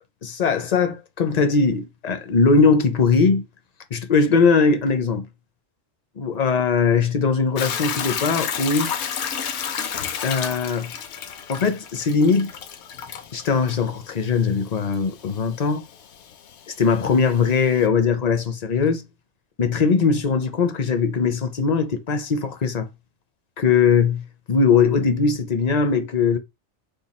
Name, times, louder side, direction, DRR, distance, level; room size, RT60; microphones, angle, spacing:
voice 1, 0.2-3.4 3.9-5.3 6.2-8.9 10.2-10.9 11.5-12.5 13.3-15.8 16.8-19.0 19.6-22.9 23.6-26.4, left 5 dB, 45° left, 0.6 m, -20 dB
Hiss / Toilet flush / Trickle dribble, 7.6-17.8, left 7 dB, 70° left, 0.9 m, -32 dB
5.3 x 2.3 x 4.2 m
omnidirectional pair, 1.2 m